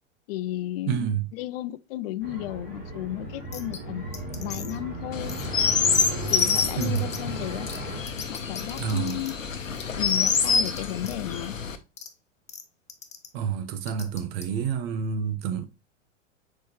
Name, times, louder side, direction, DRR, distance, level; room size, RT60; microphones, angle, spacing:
voice 1, 0.3-4.0 4.4-5.3 6.3-7.7 8.3-9.3 9.9-11.6, left 14 dB, 50° left, 0.5 m, -33 dB
voice 2, 0.9-1.3 6.7-7.1 8.8-9.2 13.3-15.7, right 7 dB, 50° right, 1.1 m, -28 dB
sound 1, 2.2-8.0, right 1 dB, 25° right, 3.4 m, -36 dB
sound 2, 3.5-3.8 4.1-4.8 5.3-5.5 5.9-6.1 6.6-7.2 7.7-7.8 8.1-9.3 9.8-10.8 11.0-11.2 12.0-12.1 12.5-12.6 12.9-13.3 13.9-14.4, left 6 dB, 15° left, 0.9 m, -40 dB
Chirp tweet, 5.1-11.8, left 5 dB, 85° left, 0.9 m, -27 dB
6.8 x 4.7 x 3.0 m
figure-of-eight pair, 95°, 38 cm